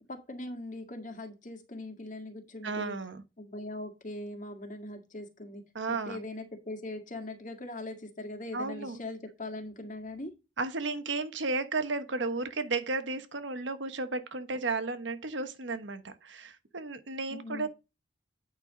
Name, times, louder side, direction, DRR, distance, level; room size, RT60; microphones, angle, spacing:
voice 1, 0.1-3.0 3.4-5.6 5.9-10.3 17.3-17.7, left 2 dB, 45° left, 1.8 m, -41 dB
voice 2, 2.6-3.2 5.7-6.2 8.5-9.0 10.6-17.7, right 3 dB, 85° right, 1.2 m, -33 dB
8.9 x 5.6 x 3.9 m
head